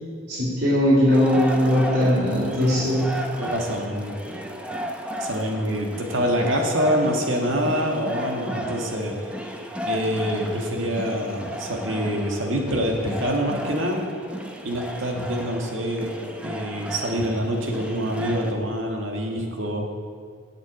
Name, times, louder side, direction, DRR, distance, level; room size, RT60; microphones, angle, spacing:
voice 1, 0.3-3.1, left 1 dB, 55° right, -9 dB, 2.9 m, -20 dB
sound 1, 1.1-18.5, equal, 5° right, 0.7 m, -34 dB
voice 2, 3.4-4.2 5.2-9.2 9.9-14.0 14.6-16.2 16.4-19.9, equal, 70° right, 1 dB, 1.8 m, -25 dB
8.1 x 7.9 x 8.6 m, 2.1 s
head